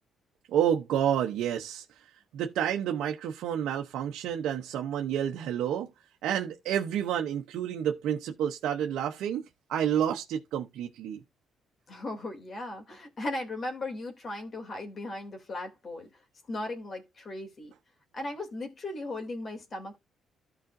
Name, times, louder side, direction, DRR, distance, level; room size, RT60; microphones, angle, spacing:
voice 1, 0.5-1.8 2.3-5.9 6.2-9.4 9.7-11.2, right 9 dB, 85° right, 0.8 m, -29 dB
voice 2, 11.9-16.1 16.5-17.7 18.1-20.0, left 2 dB, 45° left, 2.9 m, -37 dB
14.5 x 4.9 x 2.6 m
cardioid pair, 90°, 0 cm